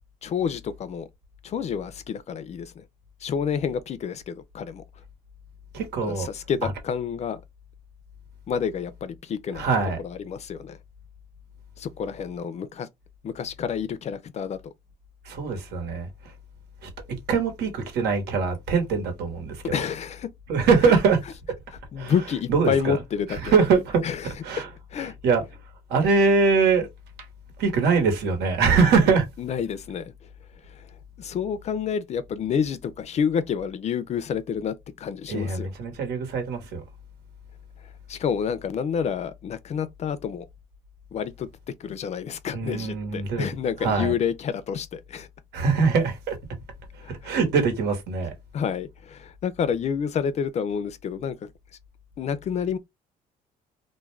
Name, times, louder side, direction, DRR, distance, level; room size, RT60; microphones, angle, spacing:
voice 1, 0.2-1.1 1.4-2.8 3.2-4.8 6.0-7.4 8.5-9.7 10.0-10.8 11.8-12.9 13.2-14.6 19.7-20.3 20.8-21.0 21.9-23.5 24.0-24.3 24.9-25.1 29.4-30.1 30.6-35.7 38.1-40.5 41.1-41.5 41.8-45.3 47.0-47.3 48.5-51.5 52.2-52.8, left 7 dB, 40° left, 0.4 m, -29 dB
voice 2, 5.7-6.3 6.6-6.7 9.5-10.0 15.2-16.1 16.8-16.9 17.3-19.8 20.5-21.2 22.0-22.1 22.5-22.9 23.3-24.0 24.4-24.7 25.2-25.4 25.9-26.9 27.6-29.3 35.3-36.8 42.5-43.5 43.8-44.1 45.5-46.4 47.2-48.3, right 5 dB, 80° right, 1.1 m, -22 dB
2.4 x 2.1 x 3.1 m
cardioid pair, 110°, 17 cm